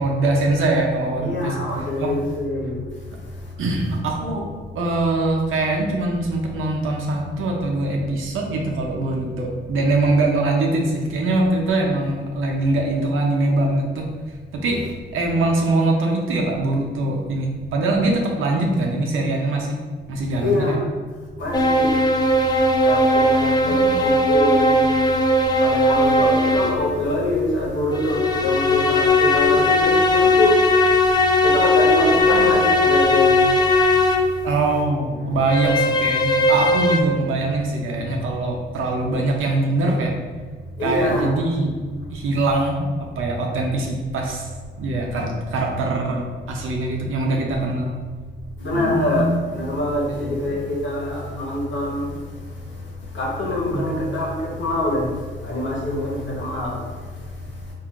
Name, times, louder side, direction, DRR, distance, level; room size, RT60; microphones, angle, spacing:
voice 1, 0.0-1.6 2.0-2.1 3.6-4.5 4.7-14.1 14.5-14.8 15.1-19.8 20.1-20.8 23.6-24.0 34.4-40.1 40.8-41.7 42.1-42.8 43.2-44.5 44.8-47.9 48.7-49.4 50.1-50.3 53.6-54.1, right 2 dB, 85° right, 0 dB, 0.7 m, -22 dB
voice 2, 1.2-2.8 20.4-20.9 21.4-22.0 22.8-24.8 25.6-30.6 31.4-33.3 40.8-41.5 48.6-52.2 53.1-55.1 55.4-56.9, left 2 dB, 65° left, -3 dB, 1.1 m, -24 dB
sound 1, 21.5-26.9 27.9-34.4 35.4-37.0, left 1 dB, 20° left, 0.4 m, -18 dB
4.4 x 2.7 x 2.5 m, 1.5 s
cardioid pair, 85°, 20 cm